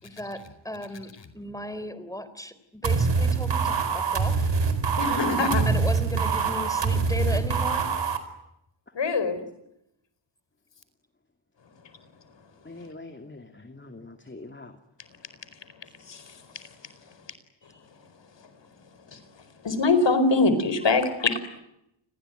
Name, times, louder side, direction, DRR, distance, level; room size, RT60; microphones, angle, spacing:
voice 1, 0.0-4.5 5.7-7.9, left 1 dB, 5° left, 14 dB, 3.7 m, -36 dB
sound 1, 2.8-8.2, right 5 dB, 65° right, 4.5 m, -24 dB
voice 2, 5.0-5.6 8.9-9.4 16.0-16.7 19.1-19.2 19.6-21.6, left 3 dB, 65° left, 12 dB, 4.7 m, -24 dB
voice 3, 12.6-14.8, left 2 dB, 25° left, 7 dB, 2.5 m, -44 dB
29.5 x 21.5 x 9.2 m, 0.82 s
wide cardioid pair, 95°, 46 cm